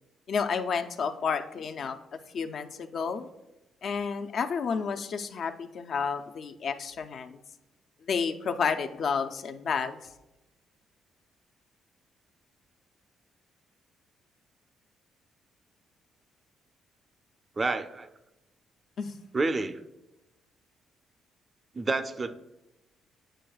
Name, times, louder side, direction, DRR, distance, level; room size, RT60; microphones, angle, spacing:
voice 1, 0.3-2.0 2.3-3.3 3.8-7.4 8.1-10.0 19.0-19.1, left 6 dB, 60° left, 8 dB, 0.4 m, -30 dB
voice 2, 17.6-18.1 19.3-19.8 21.7-22.3, right 3 dB, 30° right, 10 dB, 0.4 m, -29 dB
8.9 x 4.7 x 2.3 m, 0.96 s
cardioid pair, 90°, 0 cm